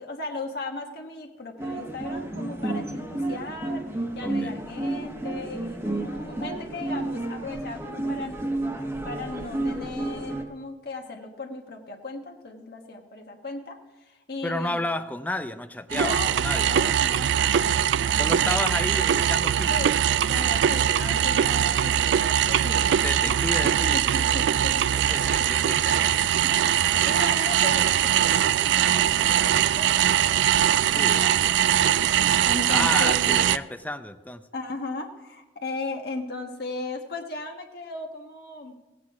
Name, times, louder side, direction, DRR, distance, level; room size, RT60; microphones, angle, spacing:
voice 1, 0.0-8.4 9.0-14.8 15.9-16.3 16.6-18.5 19.7-20.0 20.3-23.3 23.6-25.5 26.3-30.1 30.8-31.6 32.4-33.5 34.5-38.8, left 2 dB, 60° left, 2 dB, 1.3 m, -37 dB
sound 1, 1.6-10.4, right 2 dB, 15° right, 1.2 m, -31 dB
voice 2, 4.2-4.5 14.4-16.7 18.2-19.8 23.0-24.3 24.9-26.3 26.5-26.6 30.9-31.3 32.7-34.4, left 1 dB, 10° left, 10 dB, 0.5 m, -32 dB
sound 2, 15.9-33.6, right 10 dB, 80° right, 0.3 m, -22 dB
17.0 x 8.6 x 4.8 m, 1.1 s
head